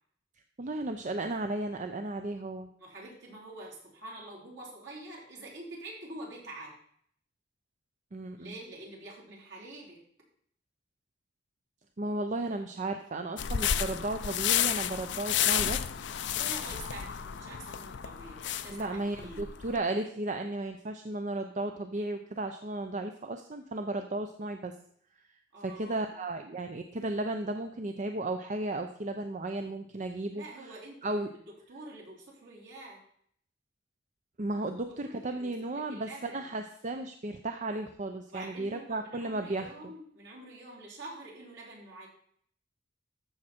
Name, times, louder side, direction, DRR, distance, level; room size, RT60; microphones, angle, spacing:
voice 1, 0.6-2.7 8.1-8.5 12.0-15.8 18.7-24.7 25.6-30.4 31.0-31.3 34.4-39.7, right 2 dB, 40° right, 6 dB, 0.6 m, -34 dB
voice 2, 2.8-6.8 8.4-10.0 16.3-19.6 25.5-26.1 30.3-33.0 34.9-36.5 38.3-42.1, right 2 dB, 65° right, -4 dB, 4.0 m, -46 dB
sound 1, 13.4-19.8, left 10 dB, 65° left, 0.5 m, -31 dB
14.0 x 6.3 x 4.4 m, 0.65 s
head